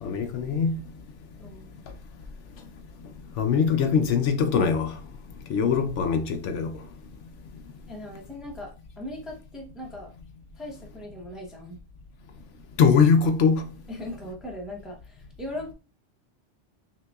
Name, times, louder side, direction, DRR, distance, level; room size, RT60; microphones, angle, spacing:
voice 1, 0.0-0.8 3.4-4.9 5.5-6.7 12.8-13.6, left 6 dB, 85° left, 1.0 m, -22 dB
voice 2, 1.4-1.8 7.9-10.1 10.5-11.8 13.9-15.7, left 1 dB, ahead, 0.7 m, -39 dB
5.8 x 2.6 x 2.3 m
omnidirectional pair, 1.2 m